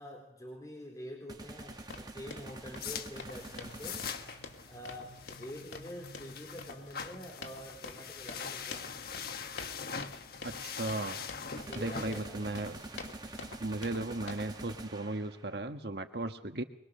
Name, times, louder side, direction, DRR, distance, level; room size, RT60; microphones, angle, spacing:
voice 1, 0.0-4.3 4.7-8.9 11.7-12.6, equal, 20° left, 0 dB, 4.0 m, -47 dB
sound 1, 1.3-4.7 11.6-15.6, right 2 dB, 25° right, 1.9 m, -46 dB
sound 2, 1.7-14.6, left 3 dB, 90° left, 2.8 m, -48 dB
sound 3, 2.4-13.7, left 6 dB, 60° left, 1.5 m, -43 dB
voice 2, 10.4-11.2 11.7-12.8 13.6-16.6, right 2 dB, 65° right, 7 dB, 1.4 m, -36 dB
23.5 x 23.0 x 6.7 m, 0.83 s
head